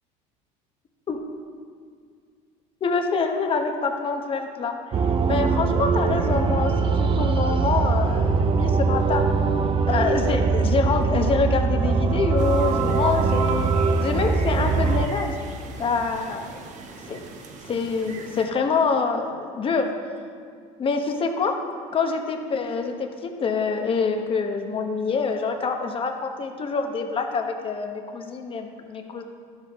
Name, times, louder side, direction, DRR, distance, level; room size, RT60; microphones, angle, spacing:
voice 1, 2.8-4.8 5.3-9.2 9.9-13.7 14.0-15.4 15.8-16.6 17.1-17.2 17.7-19.9 20.8-21.6 21.9-29.2, left 4 dB, 35° left, 4 dB, 1.1 m, -26 dB
sound 1, 4.9-15.1, right 4 dB, 35° right, 0.6 m, -22 dB
sound 2, 12.4-18.5, right 4 dB, 50° right, 1.1 m, -41 dB
12.5 x 7.5 x 3.6 m, 2.1 s
supercardioid pair, 105°, 16 cm